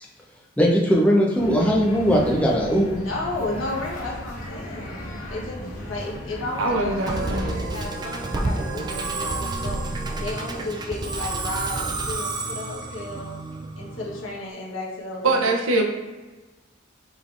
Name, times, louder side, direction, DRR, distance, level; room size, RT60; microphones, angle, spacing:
voice 1, 0.6-3.0, equal, 5° left, -3 dB, 0.7 m, -19 dB
sound 1, 1.4-7.5, equal, 45° left, 1.2 m, -36 dB
voice 2, 3.0-4.9 5.3-9.8 10.2-13.3 13.8-15.4, left 2 dB, 80° left, -4 dB, 1.1 m, -33 dB
voice 3, 6.6-7.6 15.2-15.8, right 2 dB, 80° right, 3 dB, 0.7 m, -23 dB
Musical instrument, 7.1-14.4, right 2 dB, 20° right, 0.3 m, -29 dB
5.2 x 3.3 x 2.5 m, 1.2 s
head